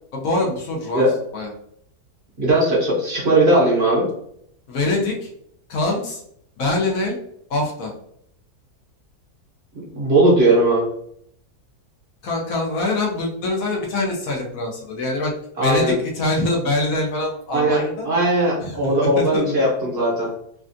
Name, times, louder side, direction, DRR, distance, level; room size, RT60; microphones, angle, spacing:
voice 1, 0.1-1.0 1.3-1.5 4.7-5.3 5.7-6.2 6.6-7.2 7.5-7.9 12.2-15.3 15.6-18.1 18.6-19.5, left 2 dB, 65° left, -1 dB, 1.0 m, -24 dB
voice 2, 2.4-4.1 9.7-10.9 15.6-16.0 17.5-20.3, right 1 dB, 50° right, -4 dB, 0.9 m, -18 dB
3.2 x 2.4 x 2.5 m, 0.70 s
omnidirectional pair, 1.7 m